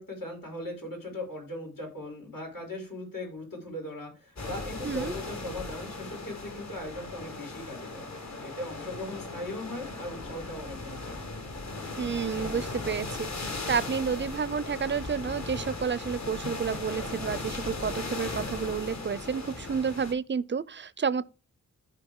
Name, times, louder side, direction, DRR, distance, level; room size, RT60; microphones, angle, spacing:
voice 1, 0.0-8.1 8.4-11.2, left 1 dB, 80° left, 5.7 m, -39 dB
sound 1, 4.4-20.1, left 2 dB, 55° left, 1.7 m, -37 dB
voice 2, 12.0-13.3 13.7-21.3, right 6 dB, 35° right, 0.4 m, -30 dB
14.5 x 4.8 x 3.6 m
wide cardioid pair, 115°, 33 cm